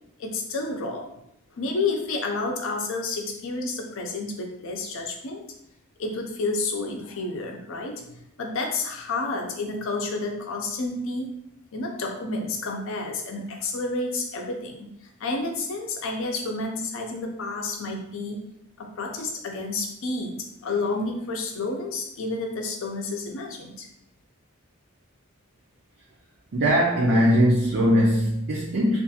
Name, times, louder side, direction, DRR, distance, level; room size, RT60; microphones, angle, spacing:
voice 1, 0.2-1.1 1.6-5.4 6.0-11.3 11.7-14.9 15.2-18.5 18.8-20.4 20.6-23.9, left 3 dB, 60° left, 2 dB, 0.5 m, -30 dB
voice 2, 26.5-29.0, equal, 55° right, -5 dB, 0.5 m, -20 dB
2.5 x 2.3 x 2.8 m, 0.78 s
head